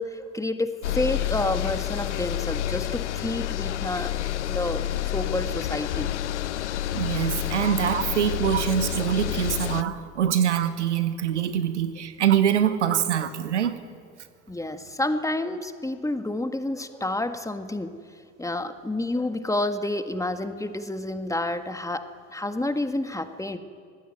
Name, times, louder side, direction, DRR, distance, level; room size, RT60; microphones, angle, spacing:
voice 1, 0.0-4.1 4.5-6.1 14.5-17.9 18.4-23.6, left 2 dB, 10° left, 8 dB, 1.7 m, -29 dB
sound 1, 0.8-9.8, left 12 dB, 75° left, 0.7 m, -29 dB
voice 2, 6.9-13.8, right 9 dB, 75° right, 12 dB, 1.3 m, -24 dB
25.5 x 19.0 x 9.4 m, 2.2 s
figure-of-eight pair, 55°, 35 cm